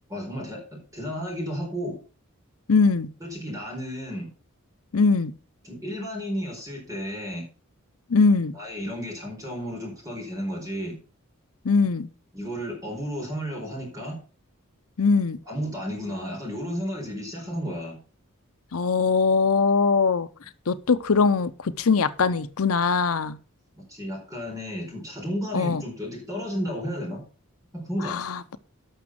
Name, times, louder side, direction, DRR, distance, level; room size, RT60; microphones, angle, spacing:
voice 1, 0.1-2.0 3.2-4.3 5.6-7.5 8.5-11.0 12.3-14.2 15.5-18.0 23.9-27.2 27.7-28.2, equal, 15° right, 4.4 m, -32 dB
voice 2, 2.7-3.1 4.9-5.3 8.1-8.6 11.6-12.1 15.0-15.4 18.7-20.3 20.7-23.4 25.5-25.8 28.0-28.6, left 4 dB, 80° left, 0.7 m, -21 dB
12.5 x 6.1 x 5.8 m
head